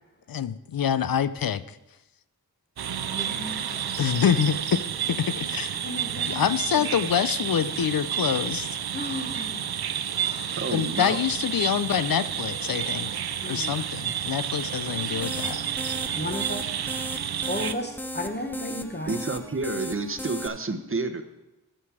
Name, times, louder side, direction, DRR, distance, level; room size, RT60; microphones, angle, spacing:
voice 1, 0.3-1.8 4.0-4.8 5.1-5.8 6.2-8.8 10.7-13.2 13.5-15.6, left 8 dB, 65° left, 15 dB, 0.5 m, -26 dB
sound 1, 2.8-17.7, right 9 dB, 75° right, 0.6 m, -30 dB
voice 2, 3.0-4.2 5.8-6.9 8.9-9.7 10.1-10.8 13.4-13.8 16.1-16.6 17.5-19.2, left 1 dB, 25° left, 4 dB, 1.1 m, -35 dB
voice 3, 10.6-11.2 19.1-21.2, right 3 dB, 35° right, 7 dB, 0.9 m, -30 dB
sound 2, 14.9-20.5, equal, 5° left, 0.5 m, -37 dB
13.0 x 6.7 x 4.8 m, 1.0 s
wide cardioid pair, 65°, 38 cm